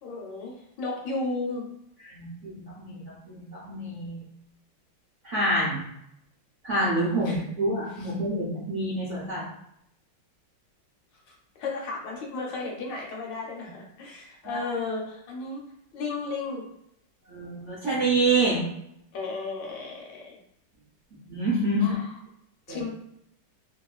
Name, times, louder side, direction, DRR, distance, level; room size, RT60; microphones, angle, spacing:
voice 1, 0.0-1.7 7.2-7.4 7.9-8.2 11.3-15.6 15.9-16.6 19.1-20.4 21.8-22.2 22.7-22.9, left 3 dB, 75° left, -1 dB, 1.3 m, -34 dB
voice 2, 2.1-2.5 2.8-4.2 5.2-5.8 6.6-9.4 14.4-14.6 17.3-18.6 21.3-21.9 22.7-22.8, right 2 dB, 60° right, -8 dB, 0.7 m, -27 dB
2.9 x 2.6 x 2.3 m, 0.76 s
omnidirectional pair, 2.1 m